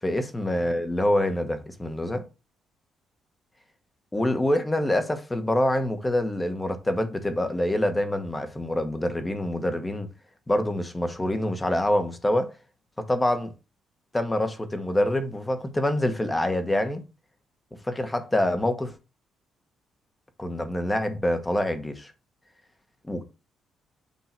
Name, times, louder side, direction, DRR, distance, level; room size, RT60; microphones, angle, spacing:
voice 1, 0.0-2.2 4.1-10.1 10.5-12.5 13.0-13.5 14.1-17.0 17.8-18.9 20.4-22.1 23.1-23.2, left 1 dB, 15° left, 1.2 m, -26 dB
8.3 x 2.8 x 4.4 m
cardioid pair, 90°, 0 cm